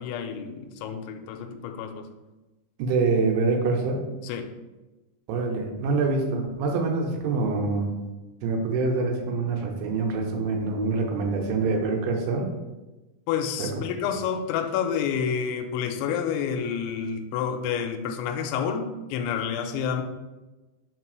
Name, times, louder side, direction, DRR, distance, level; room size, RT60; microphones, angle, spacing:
voice 1, 0.0-2.1 4.2-4.5 13.3-20.0, left 7 dB, 85° left, 5 dB, 2.8 m, -29 dB
voice 2, 2.8-4.0 5.3-7.9 8.4-12.5 13.6-13.7 14.1-14.2, right 3 dB, 90° right, 2 dB, 3.2 m, -25 dB
6.6 x 3.7 x 4.6 m, 1.1 s
omnidirectional pair, 5.5 m